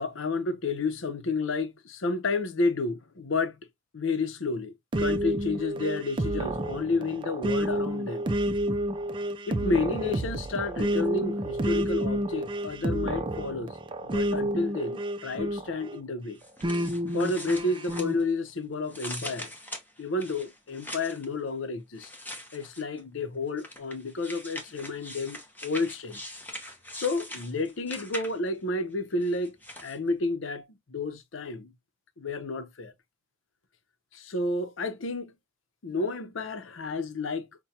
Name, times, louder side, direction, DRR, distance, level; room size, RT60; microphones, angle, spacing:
voice 1, 0.0-3.6 3.9-8.2 9.5-13.8 14.0-16.4 17.1-19.5 20.0-22.1 22.5-26.2 26.9-29.6 29.8-31.7 32.2-32.9 34.1-35.3 35.8-37.5, left 3 dB, 90° left, 0.7 m, -31 dB
sound 1, 4.9-16.0 16.6-18.2, right 1 dB, 25° right, 0.4 m, -30 dB
sound 2, 16.4-18.5 18.9-21.3 22.0-23.0 23.6-28.6 29.2-30.0, left 1 dB, 10° left, 0.8 m, -42 dB
5.7 x 2.2 x 2.7 m
head